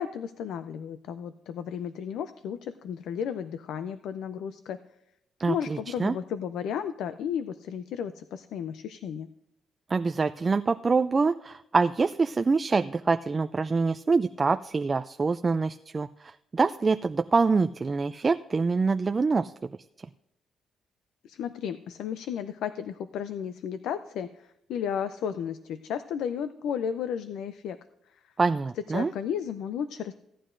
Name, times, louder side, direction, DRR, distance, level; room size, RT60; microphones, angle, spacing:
voice 1, 0.0-4.8 5.5-9.3 21.2-27.8 28.1-28.3 28.8-30.1, left 8 dB, 80° left, 11 dB, 0.4 m, -33 dB
voice 2, 5.4-6.2 9.9-19.5 28.4-29.1, right 4 dB, 30° right, 9 dB, 0.3 m, -25 dB
16.5 x 10.0 x 2.6 m, 0.82 s
cardioid pair, 90°, 0 cm